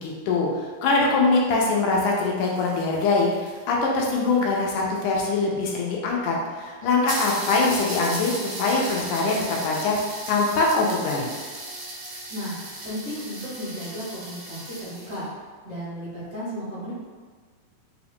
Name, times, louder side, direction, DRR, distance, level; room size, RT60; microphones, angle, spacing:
voice 1, 0.0-0.5 0.8-10.0 10.3-11.3, left 3 dB, 80° left, -2 dB, 2.1 m, -23 dB
sound 1, 2.1-4.9 5.7-5.8 6.1-6.2 6.5-6.6 7.1-15.3, right 1 dB, 70° right, 1.3 m, -36 dB
voice 2, 12.3-15.3 15.6-16.9, equal, 90° right, -14 dB, 0.5 m, -34 dB
5.3 x 2.4 x 3.5 m, 1.5 s
omnidirectional pair, 3.7 m